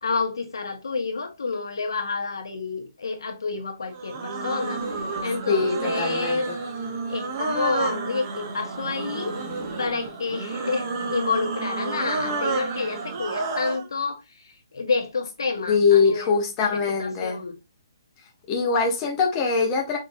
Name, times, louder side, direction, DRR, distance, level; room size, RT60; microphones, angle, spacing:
voice 1, 0.0-4.8 5.2-6.5 7.1-9.3 9.8-16.3 16.6-16.7 17.0-17.5, left 4 dB, 75° left, 1.0 m, -29 dB
sound 1, 3.9-13.9, right 4 dB, 20° right, 0.8 m, -30 dB
voice 2, 5.5-6.6 15.7-17.4 18.5-20.0, left 5 dB, 15° left, 0.7 m, -22 dB
5.2 x 2.6 x 2.5 m
hypercardioid pair, 175°, 2 cm